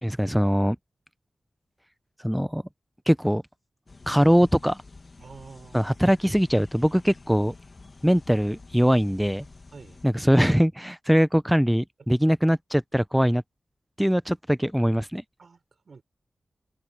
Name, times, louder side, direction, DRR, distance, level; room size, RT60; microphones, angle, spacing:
voice 1, 0.0-0.8 2.2-2.6 3.1-3.4 4.1-4.8 5.7-7.5 8.0-9.4 10.0-13.4 14.0-15.2, equal, 5° right, 0.5 m, -22 dB
sound 1, 3.9-10.1, left 3 dB, 50° left, 1.6 m, -49 dB
voice 2, 5.2-6.0 9.7-10.0 15.4-16.0, right 4 dB, 70° right, 3.6 m, -47 dB
open air
cardioid pair, 45°, 0 cm